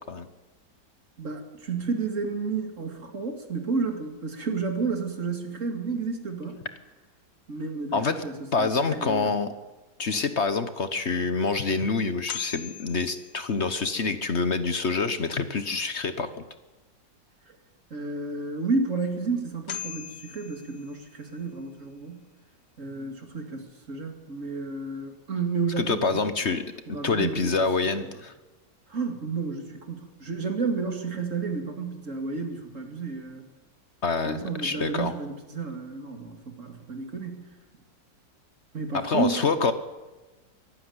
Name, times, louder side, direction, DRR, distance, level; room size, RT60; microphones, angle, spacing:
voice 1, 1.2-6.7 7.5-9.3 17.9-22.2 22.8-26.2 26.9-27.5 28.9-33.5 34.2-37.5 38.7-39.5, right 4 dB, 45° right, 5 dB, 2.9 m, -31 dB
voice 2, 7.9-8.2 8.5-9.5 10.0-16.3 25.8-26.6 27.0-28.3 34.0-35.1 38.9-39.7, left 4 dB, 45° left, 11 dB, 1.1 m, -26 dB
sound 1, 10.8-10.9 11.5-11.6 12.3-13.9 19.0-19.1 19.7-21.3, left 9 dB, 80° left, 1.9 m, -40 dB
23.5 x 12.5 x 9.7 m, 1.2 s
omnidirectional pair, 1.9 m